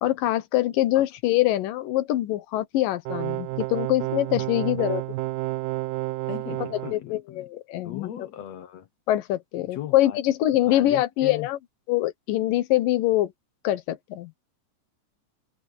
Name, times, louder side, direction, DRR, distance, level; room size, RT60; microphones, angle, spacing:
voice 1, 0.0-5.0 6.7-8.3 9.1-11.6 11.9-13.3 13.6-14.3, left 14 dB, 85° left, 2.8 m, -24 dB
sound 1, 3.1-7.0, right 17 dB, 85° right, 2.3 m, -30 dB
voice 2, 4.4-4.9 6.3-7.4 7.8-8.9 9.6-10.2 10.5-11.5, left 11 dB, 65° left, 2.0 m, -38 dB
omnidirectional pair, 3.8 m